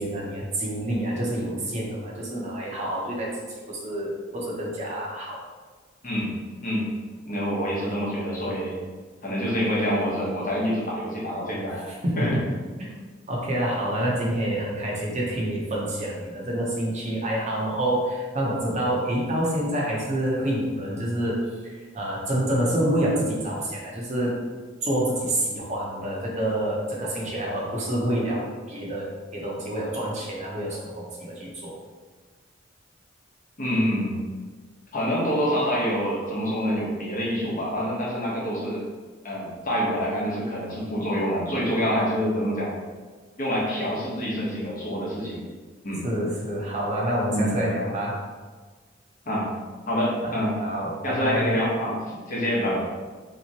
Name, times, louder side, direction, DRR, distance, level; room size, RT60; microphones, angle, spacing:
voice 1, 0.0-3.4 3.7-5.4 11.9-12.2 12.8-12.9 13.3-21.4 21.9-24.4 24.8-29.1 29.3-31.7 46.0-48.1 50.2-50.3 50.6-51.6, right 1 dB, 35° right, -4 dB, 0.7 m, -27 dB
voice 2, 6.0-6.3 6.6-6.9 7.3-8.7 9.2-11.8 12.2-12.4 33.6-34.1 34.9-38.8 39.2-42.7 43.4-45.4 45.8-46.0 47.3-47.6 49.3-49.5 49.9-50.6 51.0-52.8, equal, 45° left, -5 dB, 0.9 m, -26 dB
3.4 x 2.9 x 2.8 m, 1.4 s
head